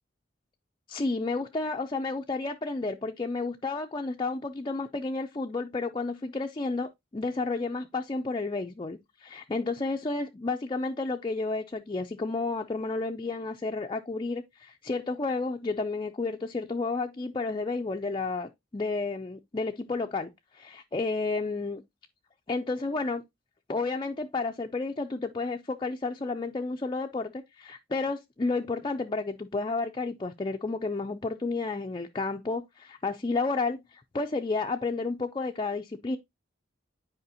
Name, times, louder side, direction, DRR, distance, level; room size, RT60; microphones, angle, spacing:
voice 1, 0.9-21.8 22.5-23.2 23.7-36.2, left 3 dB, 25° left, 0.4 m, -31 dB
9.3 x 4.9 x 2.7 m
head